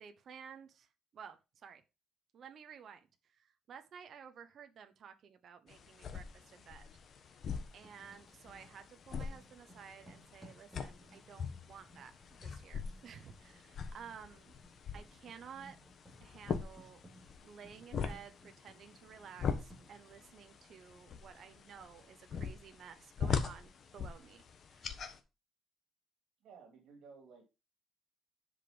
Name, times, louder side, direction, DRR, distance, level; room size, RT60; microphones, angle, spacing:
voice 1, 0.0-1.8 2.3-6.9 7.7-14.5 14.9-15.8 16.2-17.0 17.4-24.4 24.7-25.1, right 7 dB, 45° right, 8 dB, 0.9 m, -53 dB
sound 1, 5.7-25.2, left 6 dB, 40° left, 1.2 m, -42 dB
Writing, 7.7-8.8 9.1-20.1, equal, ahead, 4.5 m, -61 dB
voice 2, 26.4-27.4, right 5 dB, 70° right, 3 dB, 3.0 m, -56 dB
10.5 x 5.2 x 5.2 m, 0.28 s
cardioid pair, 165°, 0 cm